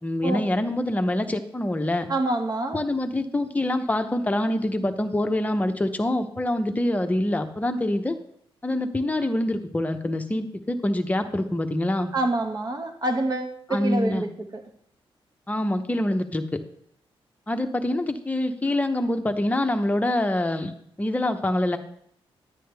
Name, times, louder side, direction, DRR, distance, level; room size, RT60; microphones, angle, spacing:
voice 1, 0.0-2.1 2.7-8.2 8.6-12.1 13.7-14.2 15.5-16.6 17.5-21.8, left 1 dB, 15° left, 7 dB, 0.8 m, -25 dB
voice 2, 2.1-2.8 12.1-14.6, right 2 dB, 40° right, 6 dB, 1.3 m, -27 dB
10.5 x 9.9 x 3.4 m, 0.68 s
wide cardioid pair, 125°, 10 cm